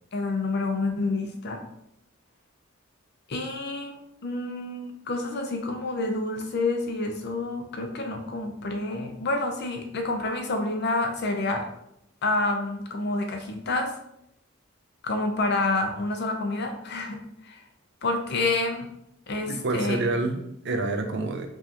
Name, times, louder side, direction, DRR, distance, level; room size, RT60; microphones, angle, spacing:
voice 1, 0.1-1.6 3.3-11.6 12.2-13.9 15.0-17.6 18.0-18.9 19.3-20.1, left 2 dB, 55° left, 4 dB, 0.6 m, -28 dB
voice 2, 19.4-21.5, right 2 dB, 60° right, 5 dB, 0.5 m, -28 dB
4.8 x 2.5 x 2.8 m, 0.78 s
head